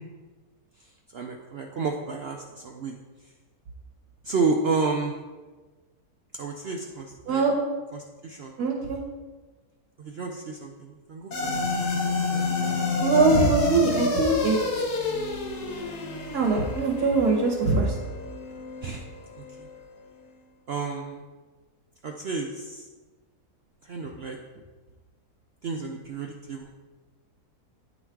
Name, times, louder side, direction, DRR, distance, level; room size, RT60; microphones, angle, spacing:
voice 1, 1.1-3.0 4.2-5.2 6.4-7.4 7.9-8.6 10.0-11.5 11.9-12.0 12.3-12.8 18.8-19.0 19.4-19.7 20.7-21.2 22.0-22.9 23.8-24.4 25.6-26.7, right 4 dB, 65° right, 2 dB, 0.6 m, -31 dB
voice 2, 8.6-9.0 13.0-14.6 16.3-17.9, right 3 dB, 85° right, -2 dB, 1.6 m, -22 dB
sound 1, 11.3-19.8, left 3 dB, 85° left, 1.6 m, -29 dB
9.7 x 4.0 x 4.5 m, 1.3 s
omnidirectional pair, 1.6 m